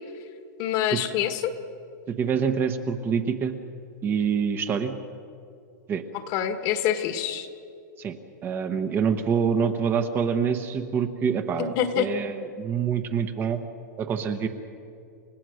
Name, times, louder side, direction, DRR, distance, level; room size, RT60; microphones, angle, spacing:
voice 1, 0.6-1.5 6.3-7.5 11.6-12.1, left 10 dB, 40° left, 9 dB, 1.6 m, -26 dB
voice 2, 2.2-3.6 4.0-4.9 5.9-6.0 8.0-8.1 8.4-13.6 14.0-14.5, right 6 dB, 20° right, 7 dB, 1.0 m, -26 dB
30.0 x 16.0 x 6.4 m, 2.6 s
supercardioid pair, 155°, 10 cm